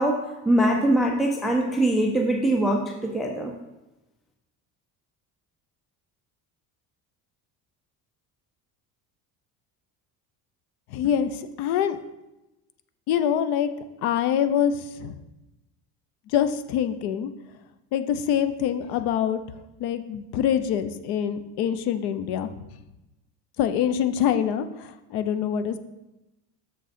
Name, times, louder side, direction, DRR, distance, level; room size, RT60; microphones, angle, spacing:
voice 1, 0.0-3.5, right 1 dB, ahead, 2 dB, 0.4 m, -23 dB
voice 2, 10.9-12.0 13.1-13.7 14.0-15.2 16.3-17.3 17.9-19.4 19.8-22.5 23.6-25.8, left 9 dB, 80° left, 11 dB, 0.7 m, -25 dB
6.8 x 6.4 x 4.2 m, 0.98 s
cardioid pair, 165°, 37 cm